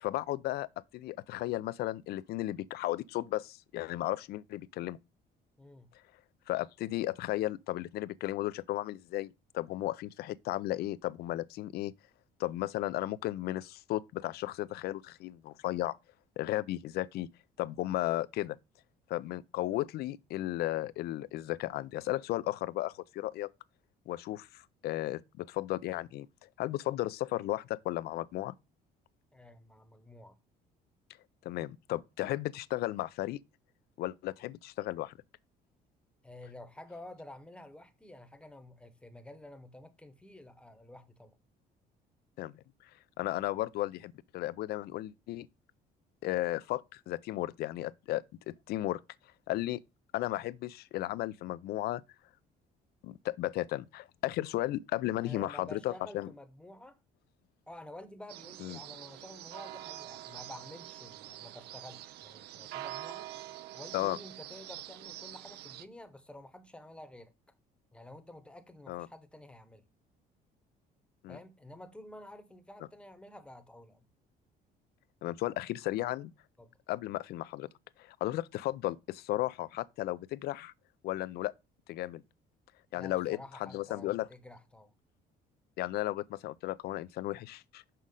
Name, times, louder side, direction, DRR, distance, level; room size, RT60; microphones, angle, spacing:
voice 1, 0.0-5.0 6.5-11.9 12.4-16.0 16.4-17.3 17.6-18.6 19.1-23.5 24.1-26.3 26.6-28.5 31.4-33.4 34.0-35.1 42.4-42.6 43.2-45.5 46.2-49.0 49.5-49.8 50.1-52.0 53.0-56.3 58.6-58.8 63.9-64.2 68.9-69.1 71.2-71.4 75.2-76.3 76.9-77.7 78.0-80.7 81.0-81.5 81.9-82.2 82.9-84.3 85.8-87.8, left 15 dB, 70° left, 0.4 m, -34 dB
voice 2, 5.6-5.9 29.3-30.4 36.2-41.4 55.2-57.0 57.7-63.3 63.7-67.3 67.9-69.8 71.3-74.1 76.6-76.7 83.0-84.9, left 1 dB, 5° left, 1.0 m, -50 dB
sound 1, 58.3-65.8, right 14 dB, 75° right, 0.5 m, -45 dB
6.2 x 5.6 x 3.7 m
cardioid pair, 110°, 17 cm